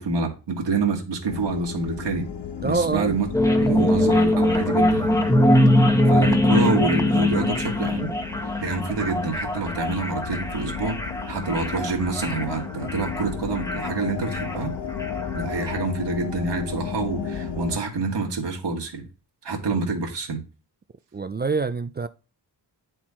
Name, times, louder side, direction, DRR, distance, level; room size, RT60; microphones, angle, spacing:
voice 1, 0.0-2.3 2.6-3.3 3.5-5.1 6.1-8.1 8.4-11.0 11.3-14.7 15.3-19.1 19.4-20.4, right 3 dB, 80° right, 1.9 m, -27 dB
sound 1, 1.3-17.8, left 7 dB, 75° left, 1.3 m, -34 dB
voice 2, 2.6-3.2 3.6-3.9 21.1-22.1, right 4 dB, 25° right, 0.3 m, -26 dB
sound 2, 3.3-15.8, left 1 dB, 10° left, 1.0 m, -22 dB
9.3 x 4.4 x 4.3 m
wide cardioid pair, 115°, 41 cm